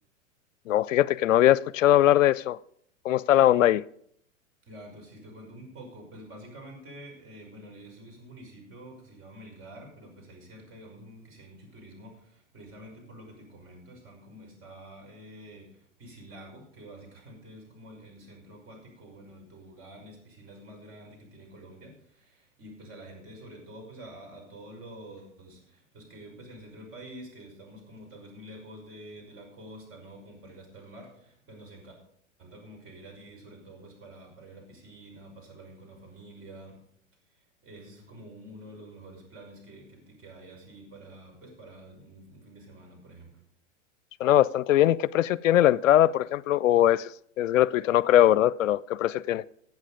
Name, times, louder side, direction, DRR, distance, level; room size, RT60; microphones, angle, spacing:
voice 1, 0.7-2.6 3.0-3.8 44.2-47.1 47.4-49.4, left 12 dB, 80° left, 0.5 m, -21 dB
voice 2, 4.6-32.0 32.4-36.9 37.3-43.4, right 1 dB, 35° right, 5.6 m, -48 dB
15.5 x 8.1 x 5.0 m
hypercardioid pair, 105°, 38 cm